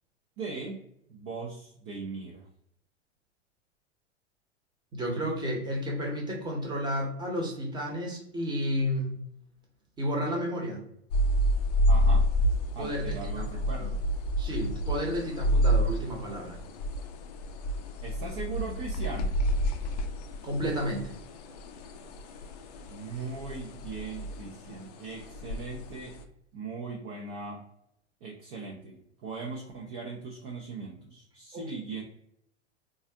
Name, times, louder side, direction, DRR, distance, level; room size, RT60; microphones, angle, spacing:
voice 1, 0.4-0.8 1.1-2.5 11.9-12.3 12.7-14.0 18.0-19.4 22.9-26.2 26.5-27.6 28.2-32.0, right 4 dB, 30° right, -1 dB, 0.5 m, -39 dB
voice 2, 4.9-9.2 10.0-10.8 12.8-13.9 14.4-16.6 20.4-21.1 31.5-31.7, equal, 10° right, -1 dB, 0.9 m, -32 dB
sound 1, 11.1-26.2, equal, 35° left, 0.4 m, -29 dB
4.0 x 2.4 x 2.7 m, 0.73 s
figure-of-eight pair, 95°, 36 cm